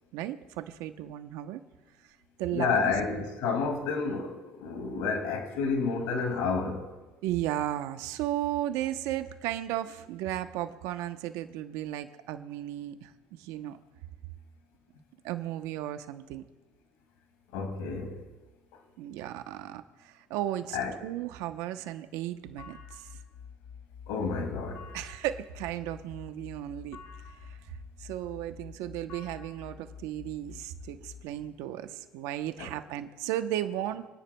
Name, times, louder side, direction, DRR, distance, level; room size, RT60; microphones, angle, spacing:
voice 1, 0.1-1.6 2.4-2.9 7.2-13.8 15.2-16.4 19.0-23.1 24.9-27.0 27.4-34.1, right 13 dB, 80° right, 0.8 m, -35 dB
voice 2, 2.5-6.8 17.5-18.2 20.7-21.0 24.1-24.9 32.6-32.7, left 5 dB, 85° left, 2.2 m, -30 dB
sound 1, 22.6-31.3, left 6 dB, 65° left, 3.2 m, -48 dB
28.0 x 10.0 x 2.2 m
supercardioid pair, 90°, 5 cm